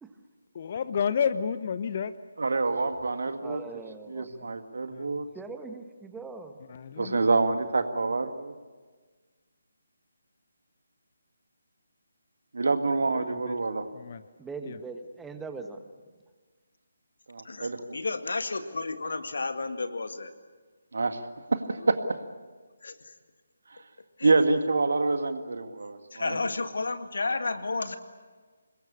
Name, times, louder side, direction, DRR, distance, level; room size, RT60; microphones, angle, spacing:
voice 1, 0.6-2.2 4.3-4.5 4.9-5.2 6.7-7.2 13.1-13.6 13.9-14.3 14.7-14.8, left 7 dB, 40° left, 13 dB, 0.8 m, -31 dB
voice 2, 2.4-3.6 4.1-5.3 7.0-8.5 12.6-13.9 17.3-17.8 20.9-21.2 21.5-22.0 24.2-26.4, right 3 dB, 60° right, 8 dB, 1.9 m, -26 dB
voice 3, 3.4-4.5 5.3-6.6 7.0-7.2 14.4-15.8, right 4 dB, 5° right, 7 dB, 1.5 m, -41 dB
voice 4, 17.4-20.3 21.8-21.9 22.8-23.1 24.2-24.3 26.1-27.9, left 3 dB, 60° left, 9 dB, 1.9 m, -32 dB
26.0 x 21.5 x 8.7 m, 1.4 s
figure-of-eight pair, 150°, 0 cm